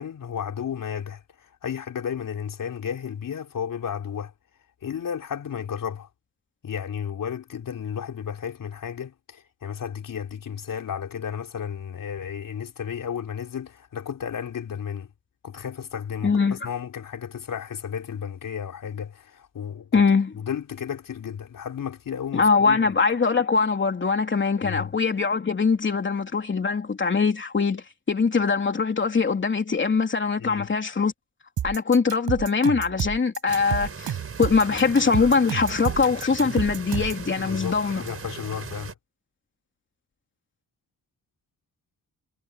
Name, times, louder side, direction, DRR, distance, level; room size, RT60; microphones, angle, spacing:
voice 1, 0.0-4.3 4.8-6.1 6.6-15.1 15.4-20.0 20.4-22.8 24.6-24.9 30.4-30.7 37.3-38.9, left 8 dB, 65° left, 3.7 m, -33 dB
voice 2, 16.2-16.6 19.9-20.3 22.3-31.1 31.6-38.0, left 5 dB, 35° left, 3.3 m, -22 dB
sound 1, 31.6-37.2, right 10 dB, 85° right, 6.0 m, -30 dB
sound 2, 33.5-38.9, right 5 dB, 40° right, 5.5 m, -39 dB
cardioid pair, 120°, 35 cm